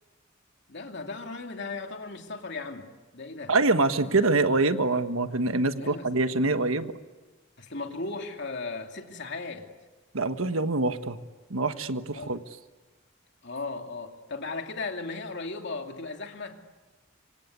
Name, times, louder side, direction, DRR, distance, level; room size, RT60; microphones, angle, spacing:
voice 1, 0.7-2.9 3.1-3.5 5.8-6.3 7.6-9.7 12.1-12.4 13.4-16.6, left 3 dB, 55° left, 4 dB, 2.8 m, -36 dB
voice 2, 3.5-6.9 10.1-11.2 11.5-12.4, right 3 dB, 80° right, 9 dB, 1.4 m, -25 dB
26.5 x 25.5 x 8.3 m, 1.3 s
head